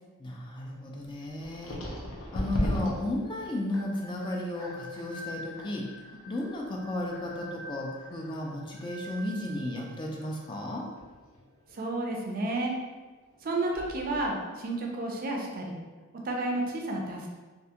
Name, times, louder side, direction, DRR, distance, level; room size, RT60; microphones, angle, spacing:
voice 1, 0.2-1.8 2.3-5.9 6.3-10.8, left 1 dB, 20° left, -1 dB, 0.3 m, -34 dB
sound 1, 1.4-12.3 12.5-12.9 13.3-14.3, equal, 70° left, 0.5 m, -39 dB
voice 2, 11.7-12.7 13.4-15.8 16.2-17.3, right 2 dB, 45° right, 0 dB, 0.4 m, -31 dB
2.4 x 2.3 x 2.7 m, 1.3 s
head